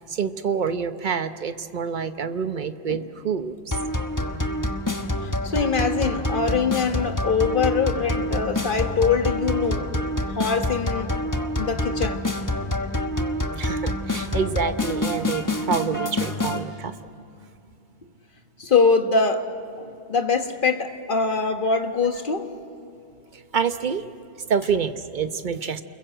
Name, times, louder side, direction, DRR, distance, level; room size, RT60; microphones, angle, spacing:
voice 1, 0.1-3.8 13.6-16.9 23.5-24.1 24.5-25.8, right 6 dB, 50° right, 10 dB, 1.1 m, -27 dB
sound 1, 3.7-16.6, left 1 dB, 20° left, 1.2 m, -27 dB
voice 2, 5.2-9.9 10.3-11.1 11.6-12.2 18.6-19.5 19.8-22.5, left 5 dB, 55° left, 6 dB, 1.7 m, -23 dB
30.0 x 22.0 x 7.8 m, 2.6 s
omnidirectional pair, 1.0 m